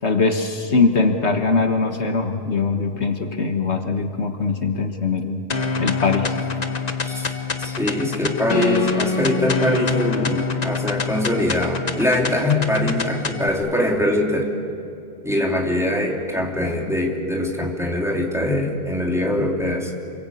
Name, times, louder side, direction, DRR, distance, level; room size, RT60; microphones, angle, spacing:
voice 1, 0.0-5.4 5.8-6.3, left 4 dB, 65° left, 5 dB, 1.7 m, -21 dB
sound 1, 5.5-13.5, left 4 dB, 35° left, 1.1 m, -25 dB
voice 2, 7.0-7.3 7.6-14.5 15.2-19.9, left 1 dB, ahead, -1 dB, 3.3 m, -22 dB
29.0 x 22.5 x 8.3 m, 2.7 s
omnidirectional pair, 1.2 m